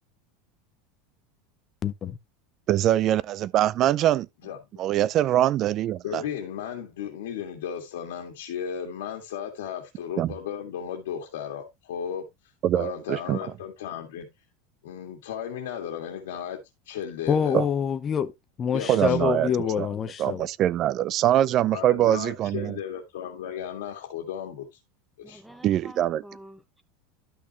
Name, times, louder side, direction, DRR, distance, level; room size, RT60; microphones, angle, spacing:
voice 1, 1.8-2.2 17.3-18.3 18.6-20.4, left 7 dB, 25° left, 0.7 m, -26 dB
voice 2, 2.7-4.3 4.8-6.2 10.2-10.3 12.6-13.4 17.5-17.6 18.9-19.5 19.8-19.9 20.2-22.8 25.6-26.2, right 12 dB, 35° right, 0.4 m, -23 dB
voice 3, 6.0-14.3 14.8-16.6 16.9-17.6 18.7-19.8 21.7-24.8 25.2-25.4, left 8 dB, 90° left, 2.0 m, -35 dB
voice 4, 25.2-26.8, right 1 dB, ahead, 1.0 m, -48 dB
12.0 x 6.1 x 3.0 m
supercardioid pair, 155°, 0 cm